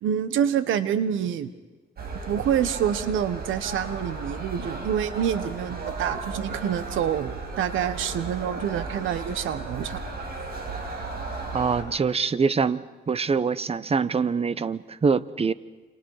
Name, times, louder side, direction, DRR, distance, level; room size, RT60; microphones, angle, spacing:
voice 1, 0.0-1.5 2.3-10.0, right 9 dB, 80° right, 13 dB, 1.5 m, -27 dB
sound 1, 2.0-11.8, right 3 dB, 50° right, 5.8 m, -35 dB
voice 2, 11.5-15.5, right 5 dB, 30° right, 17 dB, 1.0 m, -24 dB
30.0 x 27.0 x 5.0 m, 1.2 s
cardioid pair, 90°, 20 cm